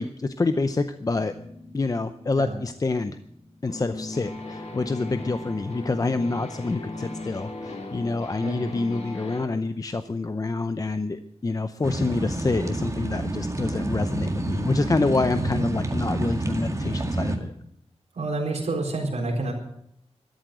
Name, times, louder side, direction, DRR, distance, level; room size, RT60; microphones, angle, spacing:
voice 1, 0.0-1.3 1.7-3.2 3.6-17.5, left 3 dB, 30° left, 10 dB, 0.6 m, -27 dB
sound 1, 1.1-9.5, left 2 dB, 75° left, 2.7 m, -39 dB
sound 2, 11.8-17.4, right 2 dB, 30° right, 1.9 m, -28 dB
voice 2, 18.1-19.5, right 2 dB, 85° right, -1 dB, 4.1 m, -28 dB
13.0 x 11.5 x 7.7 m, 0.74 s
wide cardioid pair, 120°, 11 cm